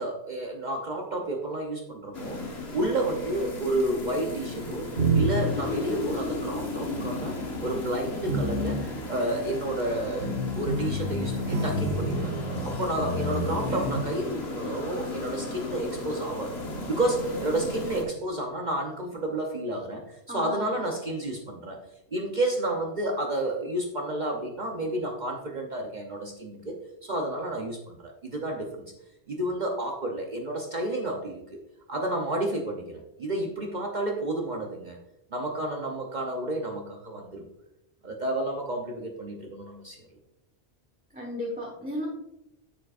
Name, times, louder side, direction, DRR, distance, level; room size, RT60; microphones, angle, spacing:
voice 1, 0.0-12.3 12.6-16.6 16.9-21.8 22.1-28.8 29.3-31.6 31.9-35.0 35.3-37.4 38.0-40.0, right 1 dB, 45° right, 1 dB, 0.9 m, -31 dB
sound 1, 2.1-18.0, left 2 dB, 70° left, 1.6 m, -36 dB
sound 2, 4.6-5.8 6.8-7.2 7.6-14.0, right 1 dB, 90° right, 1.3 m, -29 dB
voice 2, 20.3-20.8 41.1-42.1, left 1 dB, 10° right, -3 dB, 1.2 m, -34 dB
8.9 x 7.4 x 2.5 m, 0.86 s
omnidirectional pair, 1.1 m